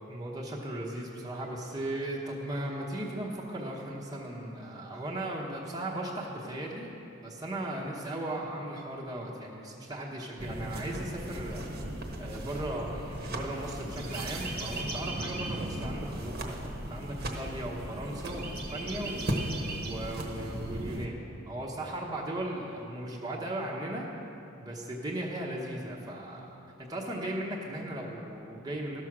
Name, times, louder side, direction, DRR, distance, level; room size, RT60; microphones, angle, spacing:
voice 1, 0.0-6.9 7.2-11.7 12.2-19.2 19.8-24.1 24.6-29.0, right 1 dB, 20° right, -3 dB, 0.9 m, -37 dB
sound 1, 10.4-21.1, right 1 dB, 50° right, 1.1 m, -36 dB
13.5 x 6.2 x 5.9 m, 2.8 s
head